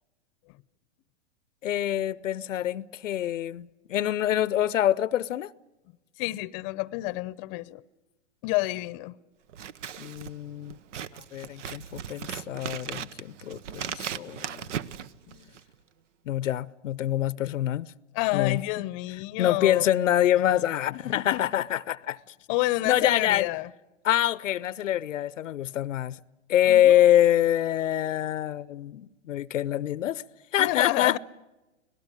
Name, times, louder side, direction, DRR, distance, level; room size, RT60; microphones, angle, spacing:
voice 1, 1.6-5.5 10.0-10.7 11.3-14.7 16.3-17.9 18.3-18.6 19.4-22.2 22.9-23.4 24.0-26.2 26.5-30.2 30.5-31.2, left 12 dB, 85° left, 0.7 m, -25 dB
voice 2, 6.2-7.8 8.4-9.2 15.0-15.5 18.1-19.9 20.9-21.4 22.5-23.7 26.7-27.0 30.6-31.2, left 20 dB, 40° left, 0.7 m, -29 dB
Scissors, 9.5-15.7, right 9 dB, 75° right, 1.0 m, -38 dB
24.5 x 18.0 x 9.0 m
hypercardioid pair, 125°, 37 cm